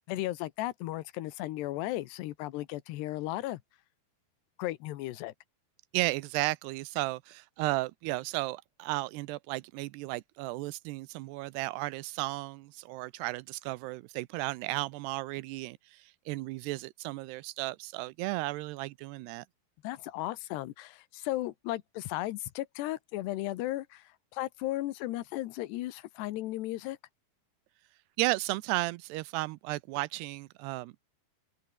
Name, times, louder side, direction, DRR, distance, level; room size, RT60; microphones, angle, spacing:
voice 1, 0.1-3.6 4.6-5.3 19.8-24.0 24.3-27.0, left 16 dB, 90° left, 3.2 m, -35 dB
voice 2, 5.9-19.4 28.2-30.9, right 20 dB, 85° right, 2.8 m, -34 dB
open air
omnidirectional pair, 4.7 m